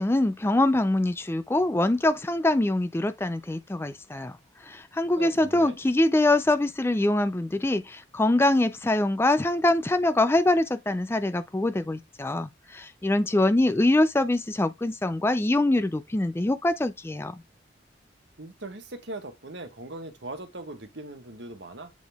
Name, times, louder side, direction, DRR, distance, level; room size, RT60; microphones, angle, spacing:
voice 1, 0.0-4.4 4.6-17.3, left 1 dB, 15° left, 0.4 m, -24 dB
voice 2, 5.2-5.8 18.4-21.9, right 2 dB, 65° right, 1.5 m, -40 dB
8.3 x 4.0 x 3.5 m
head